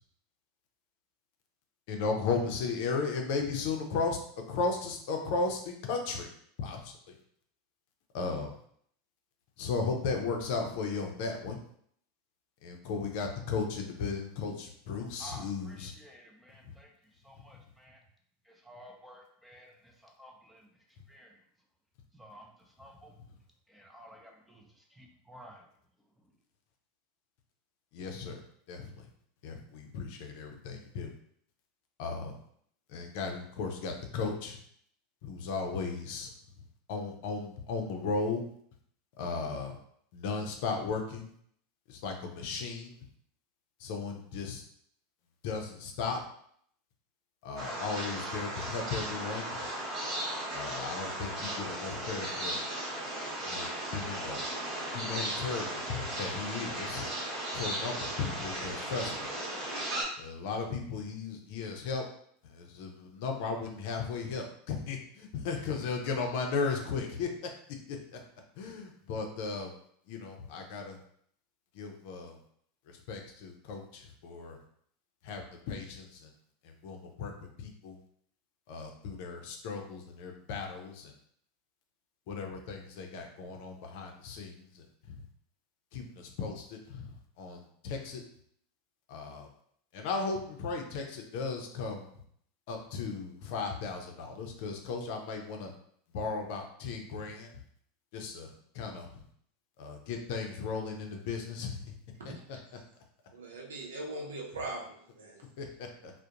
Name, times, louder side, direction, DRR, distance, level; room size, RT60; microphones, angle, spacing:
voice 1, 1.9-4.2 4.5-6.3 6.6-6.8 8.1-8.5 9.6-11.6 12.6-15.9 27.9-28.4 28.7-28.9 29.4-31.1 32.0-32.4 32.9-34.6 35.2-36.3 36.9-38.4 39.2-39.7 40.1-41.3 41.9-42.9 43.8-44.6 45.4-46.2 47.4-49.5 50.5-52.6 53.4-54.4 54.9-57.1 57.5-59.3 60.2-62.0 62.4-67.3 68.1-68.2 68.6-69.7 70.1-71.0 71.8-72.4 73.1-74.6 75.2-76.1 76.8-77.3 77.6-78.0 78.7-81.1 82.3-84.6 85.9-87.0 87.4-88.2 89.1-89.5 89.9-92.1 92.7-95.7 96.1-97.5 98.1-99.1 99.8-101.7 105.6-106.1, left 4 dB, 65° left, 3 dB, 0.5 m, -35 dB
voice 2, 15.2-18.0 18.4-20.7 21.1-21.4 22.1-23.1 23.7-25.7, right 1 dB, 5° right, 0 dB, 0.6 m, -53 dB
sound 1, 47.6-60.0, right 1 dB, 45° right, 1.0 m, -36 dB
voice 3, 103.3-105.5, right 2 dB, 85° right, 0 dB, 0.6 m, -40 dB
2.4 x 2.1 x 2.8 m, 0.65 s
hypercardioid pair, 95°, 0 cm